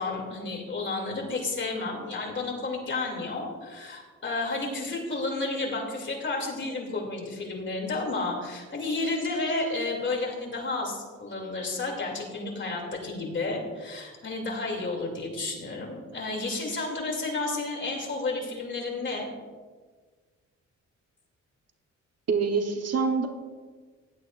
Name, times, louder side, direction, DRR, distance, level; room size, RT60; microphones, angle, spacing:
voice 1, 0.0-19.3, left 3 dB, 40° left, 0 dB, 2.7 m, -31 dB
voice 2, 22.3-23.3, right 5 dB, 60° right, 4 dB, 1.1 m, -25 dB
16.0 x 11.5 x 2.5 m, 1.5 s
cardioid pair, 110°, 29 cm